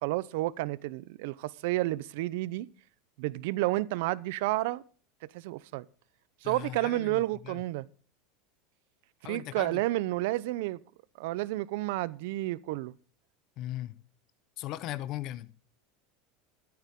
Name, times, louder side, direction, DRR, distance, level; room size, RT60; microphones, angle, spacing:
voice 1, 0.0-2.7 3.2-4.8 5.3-5.8 6.4-7.9 9.2-10.8 11.2-12.9, right 18 dB, 70° right, 0.7 m, -31 dB
voice 2, 6.4-7.6 9.2-9.8 13.6-14.0 14.6-15.5, left 14 dB, 50° left, 1.0 m, -38 dB
13.5 x 13.0 x 3.7 m
supercardioid pair, 135°, 0 cm